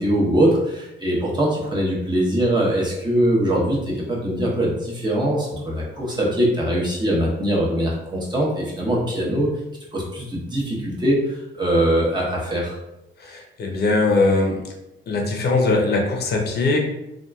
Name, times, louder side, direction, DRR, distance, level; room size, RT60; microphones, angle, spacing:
voice 1, 0.0-9.5 9.9-12.7, right 1 dB, 20° right, -4 dB, 0.9 m, -22 dB
voice 2, 13.2-14.6 15.1-16.8, left 3 dB, 55° left, 1 dB, 0.7 m, -20 dB
2.8 x 2.4 x 2.3 m, 0.91 s
cardioid pair, 90°, 20 cm